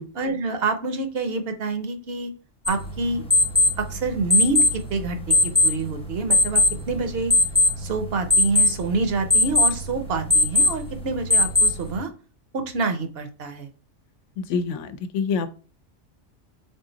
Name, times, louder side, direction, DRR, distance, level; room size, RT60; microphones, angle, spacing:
voice 1, 0.1-2.3 2.7-3.2 3.8-7.3 7.8-12.1 12.5-13.7, right 3 dB, 60° right, 7 dB, 0.8 m, -27 dB
sound 1, 2.7-12.0, left 2 dB, 5° left, 0.6 m, -22 dB
voice 2, 14.4-15.5, left 5 dB, 80° left, 11 dB, 0.9 m, -26 dB
3.7 x 3.7 x 3.9 m, 0.37 s
omnidirectional pair, 1.2 m